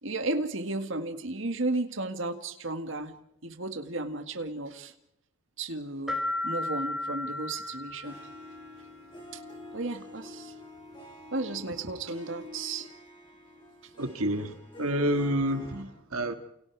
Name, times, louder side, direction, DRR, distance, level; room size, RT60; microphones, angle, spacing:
voice 1, 0.0-3.1 3.4-4.9 5.6-8.2 9.3-9.4 9.7-10.5 11.3-12.9 15.7-15.9, right 2 dB, 65° right, 2.0 m, -34 dB
sound 1, 6.1-8.7, left 2 dB, ahead, 3.7 m, -34 dB
Harp, 8.0-15.8, left 2 dB, 20° left, 6.6 m, -48 dB
voice 2, 14.0-15.8 16.1-16.3, right 1 dB, 90° right, 1.8 m, -28 dB
29.5 x 29.0 x 4.8 m
head